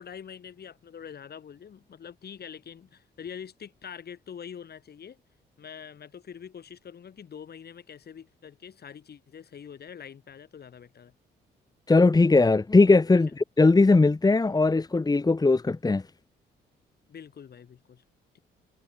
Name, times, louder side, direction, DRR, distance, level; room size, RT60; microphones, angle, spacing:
voice 1, 0.0-5.2 5.6-11.1 17.1-18.0, left 8 dB, 55° left, 7.4 m, -44 dB
voice 2, 11.9-16.0, left 3 dB, 20° left, 1.6 m, -20 dB
cardioid pair, 90°, 20 cm